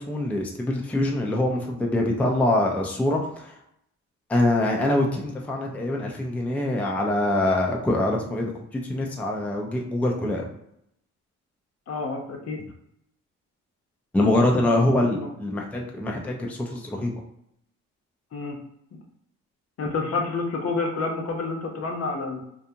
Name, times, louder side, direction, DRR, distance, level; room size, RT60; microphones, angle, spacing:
voice 1, 0.0-3.5 4.3-10.5 14.1-17.1, left 1 dB, 5° left, 0 dB, 0.4 m, -24 dB
voice 2, 11.9-12.6 15.1-15.3 18.3-18.6 19.8-22.4, left 3 dB, 55° left, 1 dB, 0.8 m, -29 dB
2.7 x 2.4 x 2.7 m, 0.75 s
cardioid pair, 90°, 30 cm